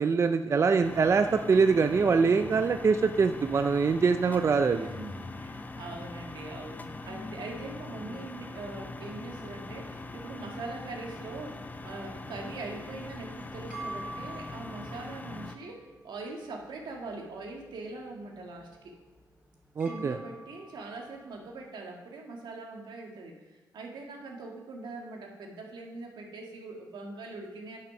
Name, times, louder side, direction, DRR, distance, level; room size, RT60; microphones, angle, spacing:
voice 1, 0.0-4.9 19.8-20.2, right 5 dB, 40° right, 8 dB, 0.4 m, -24 dB
sound 1, 0.8-15.6, left 2 dB, 20° left, 0.5 m, -42 dB
voice 2, 4.7-18.9 19.8-27.8, right 3 dB, 85° right, 1 dB, 1.7 m, -42 dB
sound 2, 13.7-21.6, right 2 dB, 15° right, 2.8 m, -48 dB
10.0 x 6.2 x 5.9 m, 1.2 s
wide cardioid pair, 120°, 8 cm